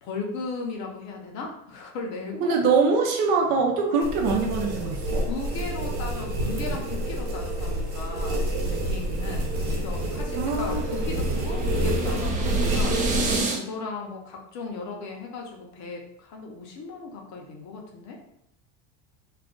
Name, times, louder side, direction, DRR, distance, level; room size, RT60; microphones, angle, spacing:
voice 1, 0.0-2.6 5.3-13.0 13.5-18.2, left 4 dB, 45° left, 1 dB, 0.7 m, -36 dB
voice 2, 2.4-5.3 10.4-10.8, right 4 dB, 55° right, 2 dB, 0.7 m, -23 dB
sound 1, 4.0-13.4, right 1 dB, 75° right, 1.0 m, -28 dB
sound 2, 9.4-13.6, right 2 dB, 20° right, 0.4 m, -31 dB
2.4 x 2.4 x 3.7 m, 0.76 s
supercardioid pair, 135°, 39 cm